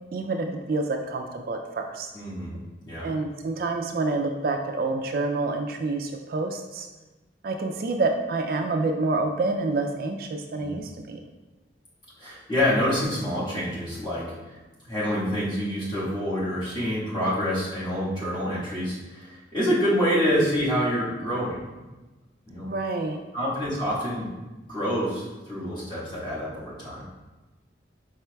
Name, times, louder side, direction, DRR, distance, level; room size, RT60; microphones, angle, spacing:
voice 1, 0.1-2.1 3.0-6.9 7.4-11.2 22.7-23.2, right 3 dB, 50° right, 4 dB, 0.3 m, -28 dB
voice 2, 2.1-2.6 2.8-3.1 10.5-10.8 12.2-14.6 14.8-21.6 22.5-22.7 23.3-24.3 24.7-27.1, equal, 25° left, -9 dB, 1.4 m, -27 dB
4.9 x 4.4 x 2.2 m, 1.2 s
head